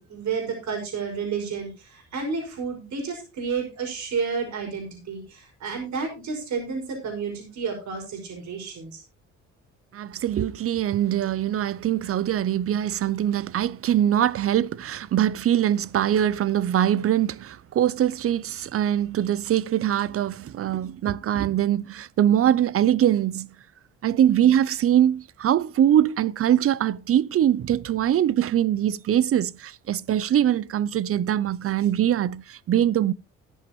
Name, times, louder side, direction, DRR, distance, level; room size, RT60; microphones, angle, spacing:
voice 1, 0.0-9.0, right 5 dB, 65° right, 5.4 m, -31 dB
voice 2, 9.9-23.5 24.0-33.1, right 10 dB, 50° right, 0.5 m, -22 dB
13.5 x 10.5 x 3.0 m
cardioid pair, 90°, 30 cm